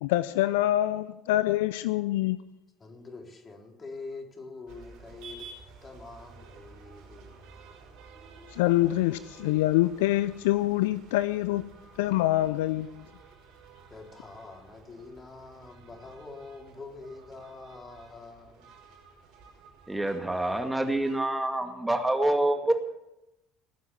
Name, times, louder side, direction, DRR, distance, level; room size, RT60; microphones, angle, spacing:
voice 1, 0.0-2.4 8.5-11.6 12.0-13.0, left 16 dB, 70° left, 0.5 m, -25 dB
voice 2, 2.8-5.5 5.8-7.5 13.9-18.7, left 3 dB, 30° left, 4.2 m, -45 dB
sound 1, 4.7-21.2, right 4 dB, 60° right, 5.6 m, -52 dB
voice 3, 19.9-22.7, right 1 dB, 10° right, 2.2 m, -26 dB
19.5 x 9.5 x 7.2 m
figure-of-eight pair, 60°, 0 cm